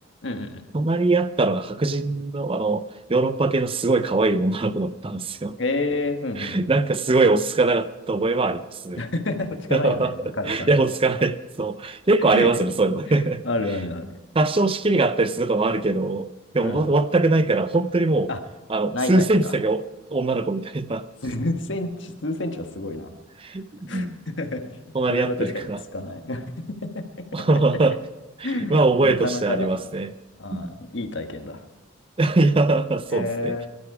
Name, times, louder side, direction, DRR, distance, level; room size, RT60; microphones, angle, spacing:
voice 1, 0.2-0.6 5.6-6.7 9.0-10.7 12.3-12.5 13.1-14.1 16.6-16.8 18.3-18.4 18.9-19.5 21.2-23.1 23.9-26.4 28.4-29.8 30.4-31.6 33.1-33.7, left 2 dB, 70° left, 5 dB, 1.5 m, -29 dB
voice 2, 0.7-2.8 3.1-5.6 6.4-9.0 9.7-10.1 10.5-13.4 14.3-16.3 16.5-18.3 18.7-19.8 20.1-21.1 23.4-24.2 24.9-25.8 27.3-28.0 28.4-30.1 30.5-30.7 32.2-33.6, right 2 dB, 30° right, 12 dB, 0.5 m, -22 dB
22.0 x 12.5 x 4.9 m, 1.1 s
head